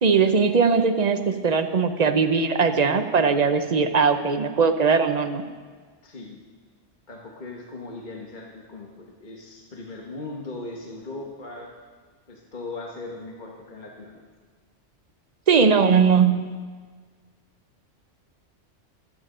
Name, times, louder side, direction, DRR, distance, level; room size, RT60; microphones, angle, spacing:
voice 1, 0.0-5.4 15.5-16.5, right 5 dB, 40° right, 8 dB, 0.7 m, -20 dB
voice 2, 6.0-6.4 7.1-11.7 12.3-14.2, left 2 dB, 40° left, -1 dB, 1.4 m, -38 dB
24.0 x 8.9 x 3.8 m, 1.5 s
omnidirectional pair, 1.2 m